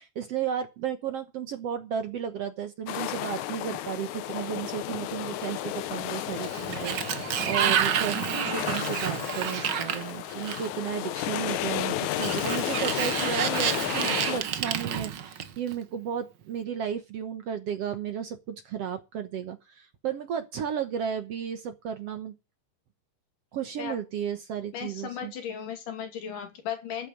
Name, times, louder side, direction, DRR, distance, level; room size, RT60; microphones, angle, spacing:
voice 1, 0.0-8.2 8.5-22.3 23.5-25.3, right 8 dB, 60° right, 1.9 m, -33 dB
sound 1, 2.9-14.4, left 13 dB, 75° left, 2.1 m, -33 dB
Sliding door, 6.3-10.9 12.0-15.7, right 9 dB, 85° right, 0.9 m, -29 dB
voice 2, 24.7-27.1, left 8 dB, 90° left, 4.2 m, -36 dB
12.5 x 8.4 x 6.5 m
omnidirectional pair, 3.6 m